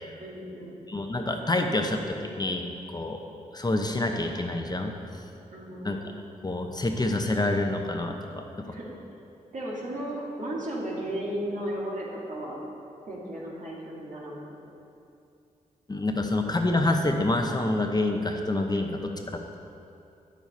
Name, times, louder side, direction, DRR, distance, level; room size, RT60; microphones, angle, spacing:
voice 1, 0.2-0.8 5.5-6.1 8.7-8.9 9.5-12.6 13.1-14.5, right 1 dB, 60° right, -4 dB, 2.1 m, -35 dB
voice 2, 0.9-3.2 3.5-4.9 5.8-6.0 6.4-8.7 15.9-19.6, left 2 dB, 25° left, 3 dB, 0.9 m, -27 dB
9.0 x 7.3 x 4.2 m, 2.6 s
supercardioid pair, 45°, 15 cm